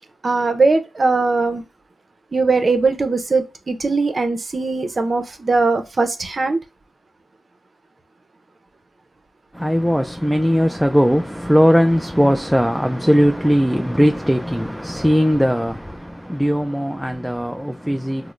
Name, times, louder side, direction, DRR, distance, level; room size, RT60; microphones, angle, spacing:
voice 1, 0.2-1.6 2.3-6.6, right 3 dB, 45° right, 0.6 m, -20 dB
voice 2, 9.5-18.3, equal, ahead, 0.3 m, -18 dB
3.6 x 2.1 x 3.1 m
cardioid pair, 65°, 0 cm